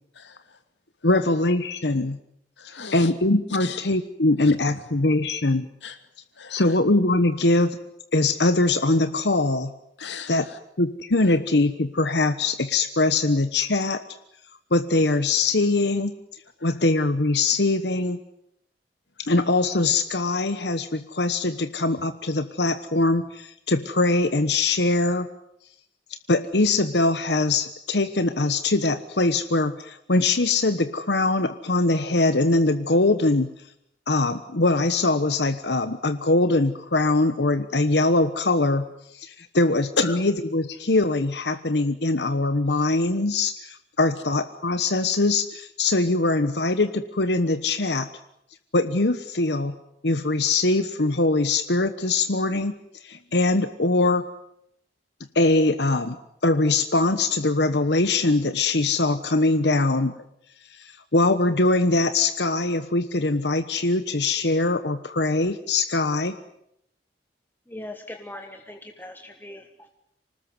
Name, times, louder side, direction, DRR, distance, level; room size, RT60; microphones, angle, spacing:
voice 1, 0.1-0.6 1.0-1.3 2.6-3.1 3.5-3.8 4.4-4.8 5.8-6.0 6.3-6.8 10.0-10.6 11.2-11.4 16.6-16.8 40.0-40.2 53.1-53.4, left 3 dB, 85° left, 9 dB, 2.4 m, -35 dB
voice 2, 1.0-2.2 2.9-5.7 6.5-7.8 8.1-9.7 10.3-10.4 10.8-14.0 14.7-16.2 16.6-18.2 19.3-25.3 26.3-33.5 34.1-39.9 40.2-48.1 48.7-49.7 50.0-52.7 53.0-54.3 55.3-56.2 56.4-60.1 60.7-66.4, left 2 dB, 70° left, 10 dB, 1.2 m, -22 dB
voice 3, 67.7-69.9, left 1 dB, 10° left, 5 dB, 1.4 m, -40 dB
26.0 x 19.5 x 9.6 m, 0.75 s
head